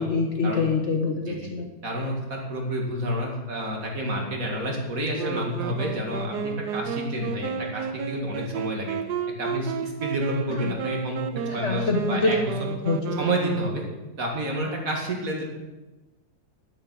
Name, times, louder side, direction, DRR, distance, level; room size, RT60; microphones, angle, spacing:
voice 1, 0.0-1.7 11.5-12.3 12.8-13.2, left 4 dB, 45° left, 3 dB, 1.3 m, -25 dB
voice 2, 1.8-8.9 9.4-11.2 11.5-12.5 13.2-13.8 14.2-15.4, equal, 55° right, 0 dB, 2.4 m, -29 dB
Wind instrument woodwind instrument, 5.2-14.2, right 7 dB, 75° right, 1.4 m, -32 dB
10.0 x 8.8 x 6.3 m, 1.1 s
omnidirectional pair, 1.8 m